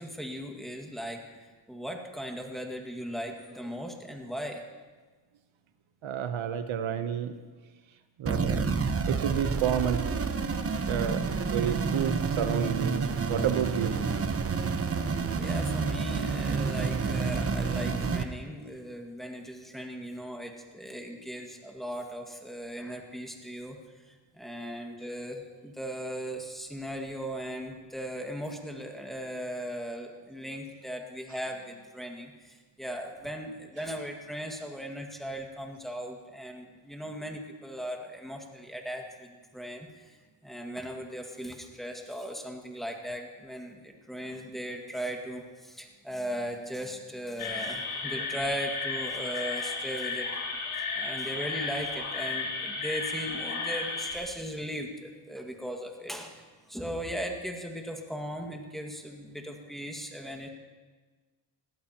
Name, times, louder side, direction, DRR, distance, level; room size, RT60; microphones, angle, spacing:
voice 1, 0.0-4.6 15.4-23.8 24.1-40.2 40.4-50.6 50.9-56.4 56.7-60.5, equal, ahead, 2 dB, 1.9 m, -38 dB
voice 2, 6.0-7.3 8.2-8.7 9.1-10.0 10.9-11.3 11.5-13.0 13.3-14.0, right 9 dB, 70° right, 9 dB, 0.9 m, -29 dB
sound 1, 8.3-18.2, right 5 dB, 30° right, 0.9 m, -29 dB
sound 2, 47.4-54.2, left 4 dB, 75° left, 3.1 m, -34 dB
21.0 x 15.5 x 2.9 m, 1.3 s
cardioid pair, 100°, 50 cm